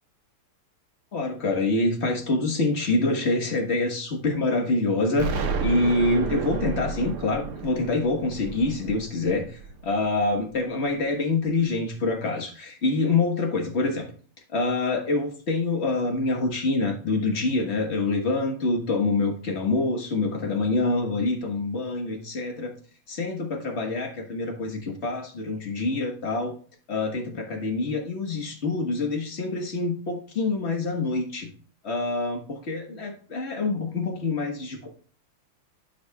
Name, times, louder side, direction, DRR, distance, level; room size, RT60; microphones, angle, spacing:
voice 1, 1.1-14.0 14.5-22.7 23.1-26.6 26.9-31.5 31.8-34.9, left 3 dB, 35° left, 3 dB, 1.4 m, -26 dB
Explosion, 5.2-10.0, right 4 dB, 80° right, 2.0 m, -31 dB
13.5 x 5.6 x 2.3 m, 0.43 s
omnidirectional pair, 2.4 m